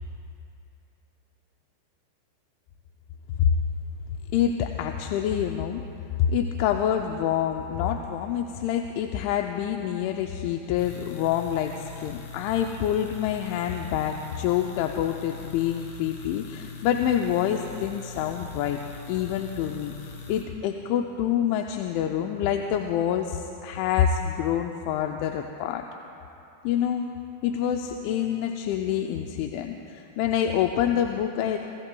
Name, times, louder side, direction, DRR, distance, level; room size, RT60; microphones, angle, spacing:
voice 1, 4.3-5.8 6.3-18.8 19.1-19.9 20.3-25.8 26.6-27.1 27.4-31.6, left 9 dB, 90° left, 3 dB, 3.0 m, -27 dB
sound 1, 10.8-20.4, left 4 dB, 65° left, 3.2 m, -42 dB
29.0 x 16.5 x 2.2 m, 2.7 s
omnidirectional pair, 5.3 m